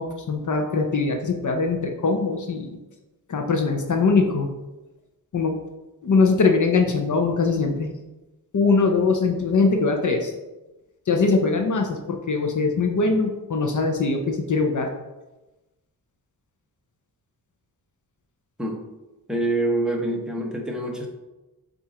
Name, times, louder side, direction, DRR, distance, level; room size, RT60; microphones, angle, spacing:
voice 1, 0.0-2.8 3.3-4.5 5.3-5.6 6.0-7.9 8.5-10.3 11.1-14.9, left 4 dB, 50° left, 3 dB, 0.8 m, -22 dB
voice 2, 19.3-21.1, right 1 dB, ahead, -1 dB, 1.0 m, -25 dB
7.1 x 2.7 x 4.9 m, 1.1 s
wide cardioid pair, 120°, 38 cm